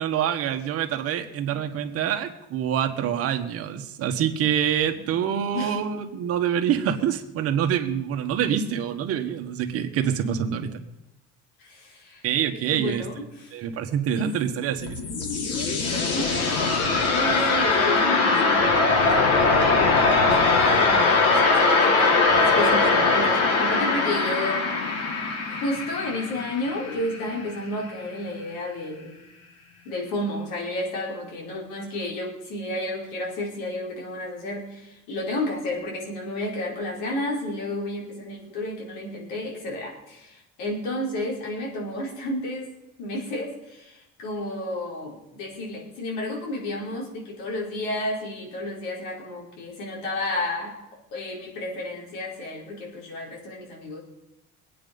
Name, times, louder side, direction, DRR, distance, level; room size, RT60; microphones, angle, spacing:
voice 1, 0.0-10.8 12.2-13.0 13.5-15.1, right 9 dB, 50° right, 7 dB, 1.5 m, -26 dB
voice 2, 11.6-12.3 12.7-13.6 14.1-14.3 15.0-15.1 15.8-19.7 20.3-24.6 25.5-29.1 29.8-42.7 43.0-50.8 51.1-54.0, left 1 dB, 85° left, -1 dB, 4.9 m, -32 dB
sound 1, 14.6-27.5, left 3 dB, 55° left, 2.7 m, -21 dB
22.5 x 9.1 x 5.4 m, 0.92 s
cardioid pair, 155°, 30 cm